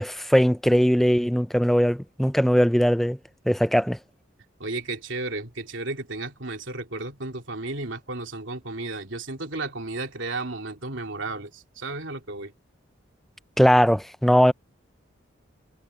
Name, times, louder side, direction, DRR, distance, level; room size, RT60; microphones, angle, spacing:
voice 1, 0.0-3.2 3.5-4.0 13.6-14.5, equal, ahead, 0.4 m, -20 dB
voice 2, 4.6-12.5, right 2 dB, 70° right, 3.0 m, -33 dB
head